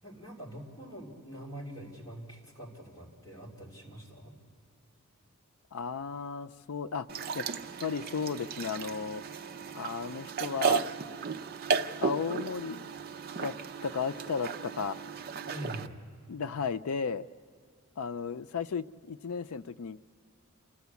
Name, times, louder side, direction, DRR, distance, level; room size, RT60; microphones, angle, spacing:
voice 1, 0.0-4.3 15.5-16.0, right 1 dB, 15° left, -2 dB, 3.3 m, -44 dB
voice 2, 5.7-7.1 7.3-7.5 7.8-9.2 9.7-10.9 12.0-12.9 13.4-13.5 13.8-15.0 16.3-17.3 18.0-20.0, left 5 dB, 90° left, 13 dB, 0.5 m, -34 dB
sound 1, 7.1-15.9, right 5 dB, 45° right, 0.5 m, -35 dB
27.5 x 14.0 x 8.3 m, 2.3 s
head